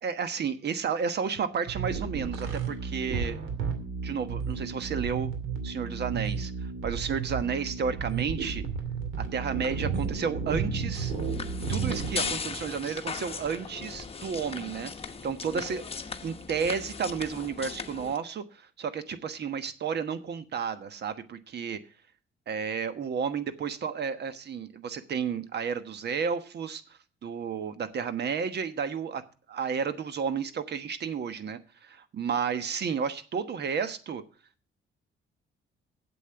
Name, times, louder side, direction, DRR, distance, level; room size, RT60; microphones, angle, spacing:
voice 1, 0.0-3.4 4.0-5.3 5.6-8.6 9.2-11.1 11.7-15.9 16.2-21.8 22.5-34.2, right 6 dB, 55° right, 11 dB, 1.3 m, -32 dB
sound 1, 1.7-12.3, right 5 dB, 90° right, 2.4 m, -33 dB
sound 2, 10.9-18.2, left 5 dB, 30° left, 1.0 m, -38 dB
8.3 x 7.7 x 7.7 m, 0.39 s
cardioid pair, 90°, 20 cm